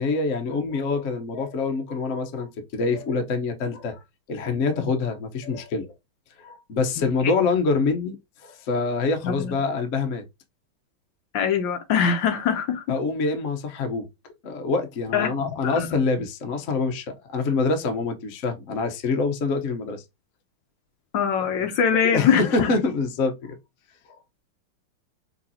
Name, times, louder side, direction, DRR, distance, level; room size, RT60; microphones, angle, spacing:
voice 1, 0.0-4.0 4.3-5.9 6.4-8.1 8.4-10.2 12.9-14.1 14.4-20.0 22.0-23.5, left 4 dB, 50° left, 0.9 m, -25 dB
voice 2, 7.0-7.3 9.2-9.5 11.3-12.8 15.1-15.9 21.1-22.7, left 7 dB, 70° left, 1.3 m, -23 dB
5.6 x 3.1 x 2.7 m
omnidirectional pair, 2.3 m